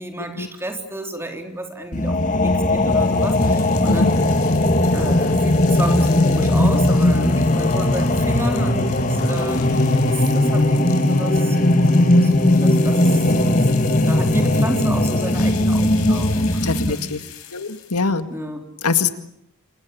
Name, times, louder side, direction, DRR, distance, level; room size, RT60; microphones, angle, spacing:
voice 1, 0.0-4.1 4.9-17.1 18.3-18.7, right 1 dB, 10° right, 4 dB, 3.7 m, -32 dB
sound 1, 1.9-16.9, left 1 dB, 35° left, 1.8 m, -18 dB
sound 2, 2.7-18.0, left 10 dB, 75° left, 6.0 m, -39 dB
voice 2, 16.6-17.2 17.5-18.3 18.8-19.1, left 4 dB, 90° left, 9 dB, 2.1 m, -22 dB
28.0 x 28.0 x 7.1 m, 0.75 s
head